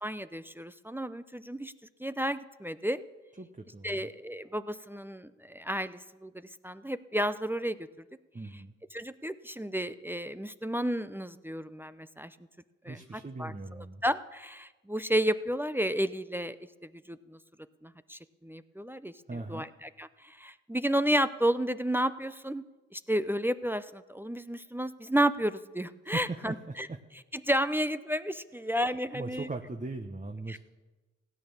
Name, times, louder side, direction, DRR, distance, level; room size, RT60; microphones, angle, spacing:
voice 1, 0.0-1.7 2.0-3.0 3.8-7.9 8.9-12.4 12.8-16.6 16.8-17.4 17.8-22.6 22.9-26.9 27.3-29.5 30.5-30.6, equal, 5° right, 12 dB, 0.6 m, -32 dB
voice 2, 3.4-4.1 8.3-8.7 12.9-14.0 19.3-19.7 26.1-27.0 29.1-30.6, right 3 dB, 25° right, 5 dB, 1.1 m, -39 dB
16.0 x 8.9 x 7.2 m, 1.2 s
supercardioid pair, 45°, 29 cm